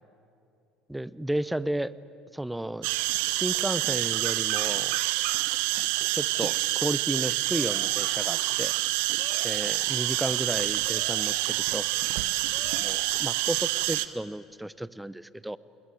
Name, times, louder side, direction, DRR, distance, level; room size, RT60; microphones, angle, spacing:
voice 1, 0.9-1.9 2.3-2.9 3.3-5.0 6.1-8.7 9.0-9.1 9.4-11.9 12.1-12.3 12.7-15.6, right 1 dB, 5° right, 18 dB, 0.8 m, -33 dB
sound 1, 2.8-14.1, right 19 dB, 70° right, 0.8 m, -27 dB
sound 2, 7.5-14.2, left 5 dB, 50° left, 4.3 m, -48 dB
26.0 x 21.0 x 9.4 m, 2.7 s
hypercardioid pair, 65°, 0 cm